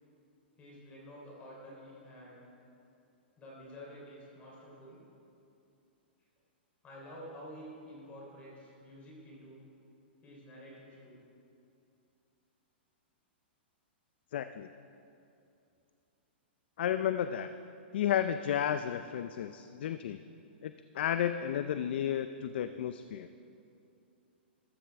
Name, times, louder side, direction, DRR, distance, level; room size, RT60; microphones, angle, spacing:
voice 1, 0.6-2.5 3.4-5.0 6.8-9.6 10.2-11.3, equal, 25° left, -4 dB, 3.5 m, -50 dB
voice 2, 14.3-14.7 16.8-17.5 17.9-20.2 20.6-23.3, left 10 dB, 65° left, 11 dB, 0.4 m, -32 dB
14.0 x 13.5 x 3.5 m, 2.6 s
hypercardioid pair, 135°, 6 cm